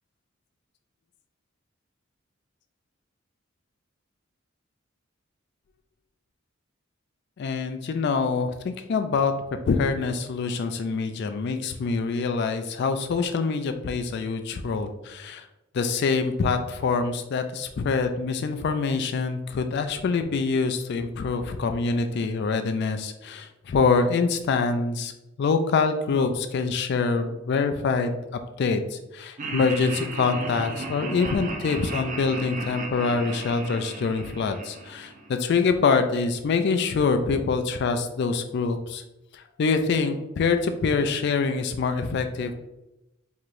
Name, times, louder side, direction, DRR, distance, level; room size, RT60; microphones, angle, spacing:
voice 1, 7.4-9.3 9.7-15.5 15.7-25.1 25.4-39.0 39.3-42.5, left 4 dB, 55° left, 7 dB, 0.3 m, -25 dB
Laughter, 29.4-35.6, right 3 dB, 40° right, 0.5 m, -35 dB
4.6 x 3.0 x 2.5 m, 0.92 s
head